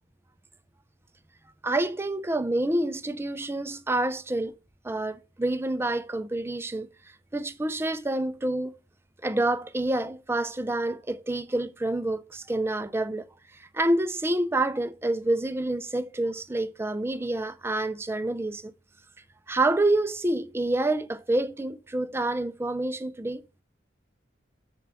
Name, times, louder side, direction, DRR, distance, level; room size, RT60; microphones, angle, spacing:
voice 1, 1.6-4.5 4.8-6.9 7.3-8.7 9.2-13.3 13.5-18.7 19.5-23.4, right 2 dB, 15° right, 0.4 m, -27 dB
7.3 x 4.4 x 6.8 m
head